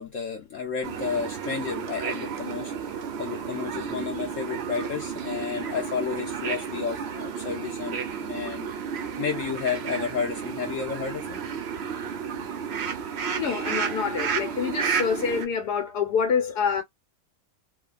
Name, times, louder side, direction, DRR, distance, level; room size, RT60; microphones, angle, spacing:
voice 1, 0.0-2.7 3.2-8.7 8.9-11.4, left 6 dB, 60° left, 0.9 m, -32 dB
sound 1, 0.8-15.4, right 6 dB, 60° right, 0.7 m, -32 dB
voice 2, 13.4-16.8, left 6 dB, 75° left, 1.3 m, -26 dB
3.1 x 2.2 x 2.3 m
omnidirectional pair, 1.8 m